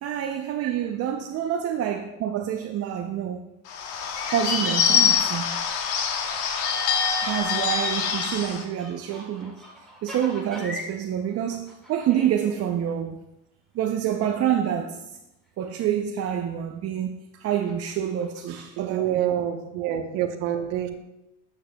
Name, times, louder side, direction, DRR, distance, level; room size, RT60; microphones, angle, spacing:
voice 1, 0.0-3.5 4.2-5.6 7.2-9.5 10.0-13.2 13.7-15.0 15.6-19.2, right 9 dB, 45° right, 0.6 m, -27 dB
Bird / Bell, 3.7-8.6, left 7 dB, 85° left, 1.0 m, -24 dB
sound 1, 6.9-11.0 11.3-12.6 12.9-13.0 14.3-14.4 14.7-14.8 15.1-15.2 15.6-15.9 16.3-16.9 17.6-18.6, left 1 dB, ahead, 1.9 m, -42 dB
voice 2, 18.8-20.9, right 11 dB, 80° right, 0.9 m, -27 dB
8.6 x 8.1 x 2.3 m
supercardioid pair, 95°, 34 cm